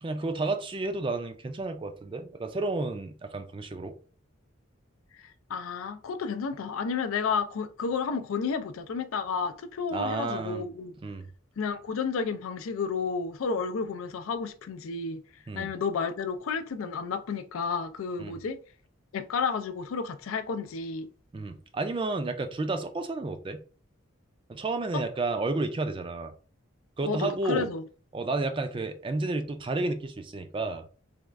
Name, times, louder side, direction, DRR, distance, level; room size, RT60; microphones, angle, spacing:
voice 1, 0.0-3.9 9.9-10.7 11.0-11.3 15.5-15.7 18.2-18.4 21.3-23.6 24.5-26.3 27.0-27.7 28.1-30.8, right 2 dB, 25° right, 0.3 m, -31 dB
voice 2, 5.5-10.9 11.6-15.2 15.5-18.6 19.1-21.1 24.9-25.0 27.0-27.8, left 5 dB, 85° left, 0.4 m, -31 dB
3.5 x 2.3 x 3.2 m
head